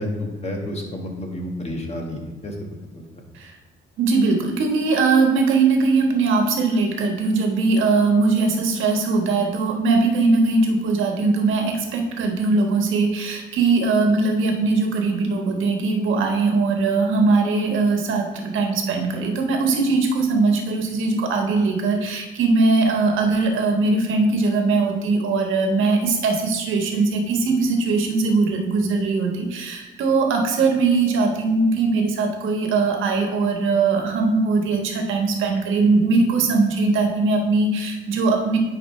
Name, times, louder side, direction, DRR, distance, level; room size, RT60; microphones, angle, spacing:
voice 1, 0.0-2.5 2.9-3.0, left 1 dB, 35° left, 1 dB, 1.6 m, -30 dB
voice 2, 4.0-38.6, right 3 dB, 80° right, 2 dB, 1.3 m, -20 dB
9.7 x 4.8 x 3.2 m, 1.2 s
cardioid pair, 90°, 20 cm